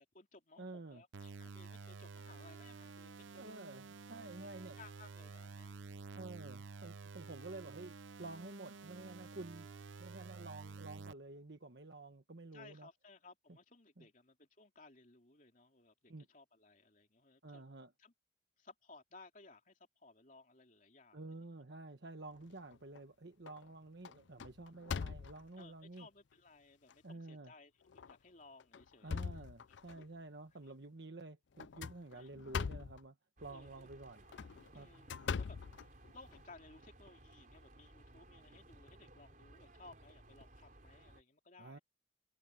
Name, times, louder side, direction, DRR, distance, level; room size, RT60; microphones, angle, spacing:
voice 1, 0.0-3.6 4.3-5.7 12.5-17.6 18.0-18.1 18.6-21.2 25.6-29.4 29.9-30.0 30.7-30.8 32.1-32.3 33.5-33.9 34.7-35.6 36.1-41.8, left 3 dB, 45° left, 3.2 m, -60 dB
voice 2, 0.6-1.0 3.3-4.8 6.1-7.9 8.2-9.7 10.0-12.9 14.0-14.1 16.1-16.3 17.4-17.9 21.1-26.1 27.0-27.5 29.0-33.2 33.4-34.2 34.7-34.9 41.6-41.8, right 2 dB, 60° right, 1.3 m, -50 dB
sound 1, 1.1-11.1, right 4 dB, 85° right, 0.7 m, -51 dB
sound 2, 22.4-23.0 23.5-23.7 24.0-25.6 26.3-26.4 26.9-27.0 27.9-28.1 28.6-30.0 31.6-33.0 34.2-36.4, left 6 dB, 70° left, 0.5 m, -42 dB
sound 3, 33.4-41.2, right 1 dB, 45° right, 4.4 m, -60 dB
head